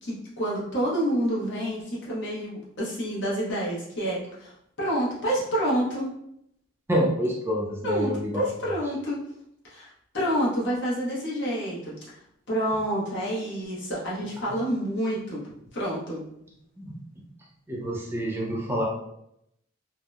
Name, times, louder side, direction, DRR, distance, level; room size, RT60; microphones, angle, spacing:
voice 1, 0.0-4.5 4.8-6.1 7.8-8.1 8.4-9.2 9.6-12.0 12.5-15.4 15.7-16.3, equal, 65° left, -6 dB, 0.9 m, -28 dB
voice 2, 6.9-8.7 16.8-16.9 17.7-18.8, equal, 10° right, -4 dB, 0.4 m, -27 dB
2.7 x 2.0 x 2.2 m, 0.77 s
head